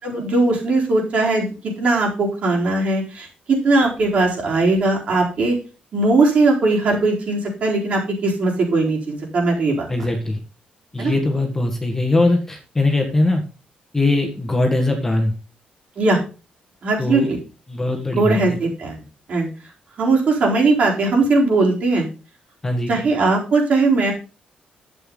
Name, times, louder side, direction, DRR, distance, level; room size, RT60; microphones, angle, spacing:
voice 1, 0.0-5.5 5.9-10.1 11.0-11.1 16.0-16.2 16.8-17.4 18.1-19.0 19.3-19.5 20.0-22.1 22.9-24.1, right 3 dB, 50° right, -1 dB, 4.4 m, -19 dB
voice 2, 9.9-10.4 10.9-13.4 13.9-15.3 17.0-17.3 17.7-18.6 22.6-22.9, left 2 dB, 15° left, 3 dB, 1.8 m, -20 dB
11.0 x 8.2 x 4.0 m, 0.33 s
cardioid pair, 160°, 3 cm